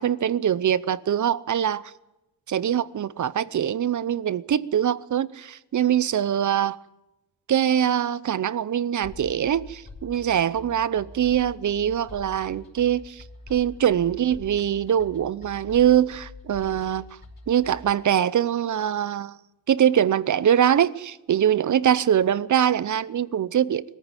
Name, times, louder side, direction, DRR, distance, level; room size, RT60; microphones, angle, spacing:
voice 1, 0.0-1.9 2.5-6.8 7.5-13.2 13.5-17.0 17.5-19.4 19.7-23.8, right 10 dB, 45° right, 0.7 m, -23 dB
sound 1, 9.0-17.9, left 3 dB, 20° left, 4.9 m, -45 dB
22.0 x 14.5 x 9.1 m
wide cardioid pair, 140°, 42 cm